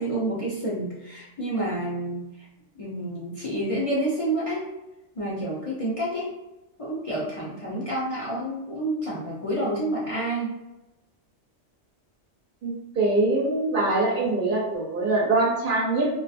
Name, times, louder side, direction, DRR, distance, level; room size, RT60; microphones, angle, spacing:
voice 1, 0.0-2.5 2.8-4.7 5.2-6.3 6.8-10.5, right 1 dB, 45° left, -7 dB, 0.5 m, -29 dB
voice 2, 12.6-16.1, right 2 dB, 60° right, -3 dB, 0.6 m, -23 dB
2.5 x 2.3 x 2.4 m, 0.98 s
omnidirectional pair, 1.2 m